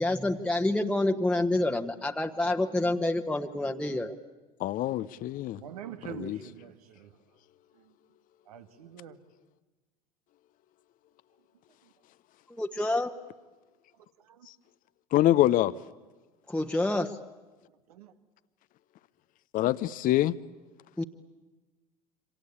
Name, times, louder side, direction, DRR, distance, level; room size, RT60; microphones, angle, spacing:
voice 1, 0.0-4.1 12.5-13.1 16.5-17.2 21.0-21.1, left 2 dB, 5° left, 1.3 m, -28 dB
voice 2, 4.6-5.6 6.1-6.4 15.1-15.7 19.5-20.3, left 14 dB, 45° left, 0.8 m, -25 dB
voice 3, 5.6-7.1 7.7-7.9 8.5-9.2 14.2-14.5 17.9-18.1, right 8 dB, 75° right, 1.9 m, -44 dB
27.0 x 25.5 x 8.5 m
hypercardioid pair, 75°, 19 cm